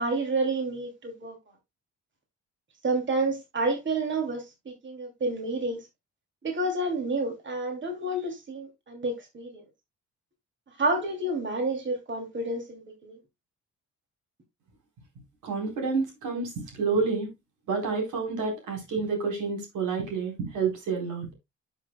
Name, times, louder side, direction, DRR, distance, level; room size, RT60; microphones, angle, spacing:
voice 1, 0.0-1.4 2.8-5.9 6.4-9.6 10.8-13.2, right 2 dB, 40° right, 2.8 m, -29 dB
voice 2, 15.4-17.3 17.7-21.3, right 4 dB, 85° right, 4.2 m, -29 dB
12.0 x 6.5 x 2.2 m
cardioid pair, 90°, 30 cm